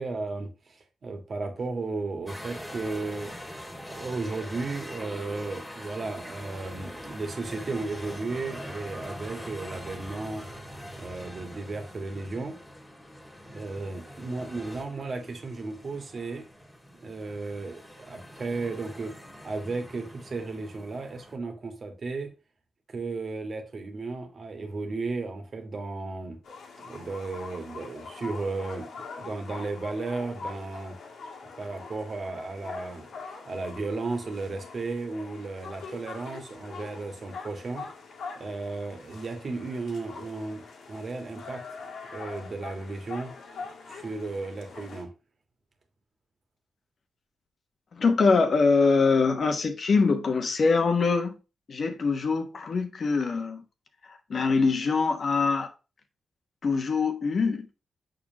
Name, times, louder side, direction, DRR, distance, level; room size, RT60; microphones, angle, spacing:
voice 1, 0.0-3.3 3.9-10.5 11.0-12.6 13.5-16.5 17.0-19.1 19.4-22.3 22.9-26.4 26.8-31.0 31.6-33.1 33.4-37.9 38.3-41.8 42.1-43.3 43.9-45.1, right 3 dB, 50° right, 1.8 m, -34 dB
sound 1, 2.3-21.4, equal, 10° left, 2.0 m, -43 dB
sound 2, 26.4-45.0, left 4 dB, 80° left, 1.8 m, -43 dB
voice 2, 47.9-51.3 51.7-53.6 54.1-55.7 56.6-57.7, left 4 dB, 55° left, 1.1 m, -23 dB
6.4 x 5.7 x 2.9 m
cardioid pair, 85°, 0 cm